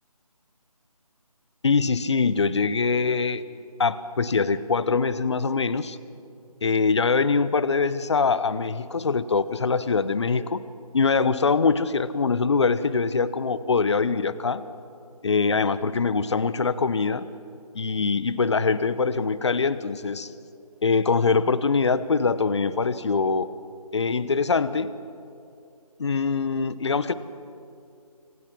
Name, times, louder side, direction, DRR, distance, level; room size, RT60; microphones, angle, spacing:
voice 1, 1.6-3.5 3.8-6.0 6.6-10.6 10.9-14.6 15.2-17.3 17.7-20.3 20.8-23.5 23.9-24.9 26.0-27.1, left 4 dB, 45° left, 15 dB, 1.0 m, -23 dB
27.0 x 25.5 x 6.1 m, 2.5 s
figure-of-eight pair, 160°, 19 cm